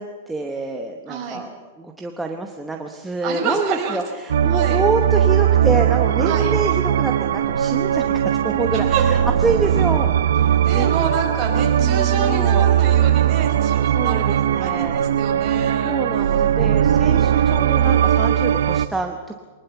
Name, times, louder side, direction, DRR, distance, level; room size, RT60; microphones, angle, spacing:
voice 1, 0.0-10.9 11.7-12.7 13.9-15.0 15.8-19.4, right 2 dB, 5° right, 2 dB, 1.0 m, -27 dB
voice 2, 1.1-1.4 3.2-4.0 4.5-4.8 6.2-6.5 8.7-9.0 10.6-16.0, right 6 dB, 25° right, 0 dB, 4.9 m, -27 dB
sound 1, 4.3-18.9, right 10 dB, 85° right, 0.7 m, -19 dB
23.0 x 19.5 x 7.0 m, 1.5 s
supercardioid pair, 170°, 0 cm